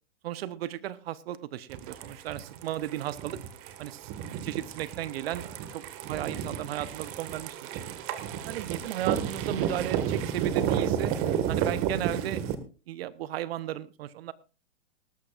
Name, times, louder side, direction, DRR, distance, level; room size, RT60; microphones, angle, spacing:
voice 1, 0.2-3.4 3.8-7.9 8.5-11.2 11.5-12.4 12.9-14.3, right 12 dB, 55° right, 18 dB, 0.9 m, -35 dB
sound 1, 1.7-12.5, right 9 dB, 40° right, 1.7 m, -32 dB
19.5 x 13.0 x 2.4 m, 0.33 s
hypercardioid pair, 110°, 35 cm